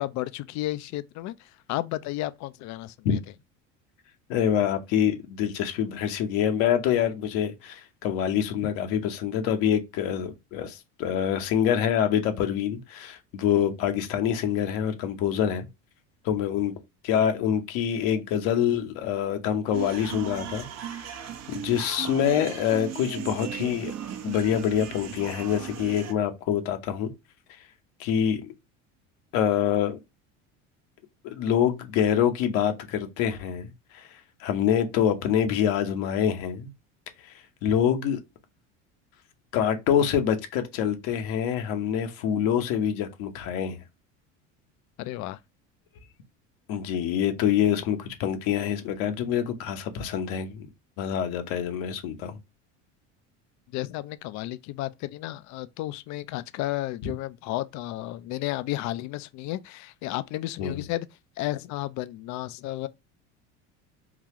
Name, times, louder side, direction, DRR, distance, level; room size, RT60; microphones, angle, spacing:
voice 1, 0.0-3.2 45.0-45.4 53.7-61.1 61.4-62.9, left 16 dB, 50° left, 0.4 m, -33 dB
voice 2, 4.3-15.7 16.2-16.7 17.0-21.2 21.5-24.0 24.2-27.1 28.0-28.5 29.3-30.0 31.2-34.1 34.4-36.7 37.2-37.3 37.6-38.2 39.5-43.8 46.7-50.7 51.0-52.4 60.6-60.8, left 9 dB, 70° left, 0.9 m, -26 dB
sound 1, 19.7-26.1, right 9 dB, 45° right, 0.7 m, -37 dB
3.9 x 2.3 x 2.8 m
supercardioid pair, 95°, 36 cm